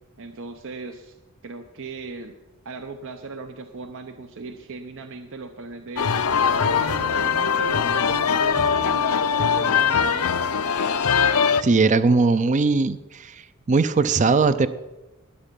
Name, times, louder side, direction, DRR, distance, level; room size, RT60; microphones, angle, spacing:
voice 1, 0.2-1.1 1.4-2.3 2.6-6.2 6.6-10.3, right 3 dB, 60° right, 7 dB, 0.8 m, -37 dB
sound 1, 6.0-11.6, left 6 dB, 80° left, 0.7 m, -21 dB
voice 2, 11.6-13.3 13.7-14.7, right 4 dB, 35° right, 13 dB, 0.5 m, -19 dB
20.0 x 8.3 x 5.3 m, 1.1 s
head